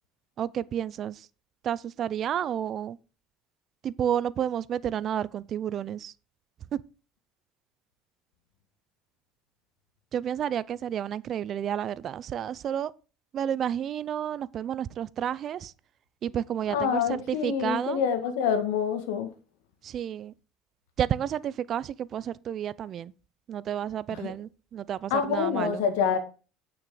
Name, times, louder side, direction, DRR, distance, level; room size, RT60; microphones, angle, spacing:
voice 1, 0.4-1.3 1.6-3.0 3.8-6.1 6.7-6.8 10.1-12.9 13.3-15.7 16.2-18.0 19.8-20.3 21.0-23.1 23.5-25.8, right 9 dB, 40° right, 0.4 m, -31 dB
voice 2, 16.7-19.3 24.1-24.3 25.1-26.2, left 7 dB, 85° left, 1.7 m, -26 dB
9.1 x 6.0 x 4.8 m
cardioid pair, 135°, 0 cm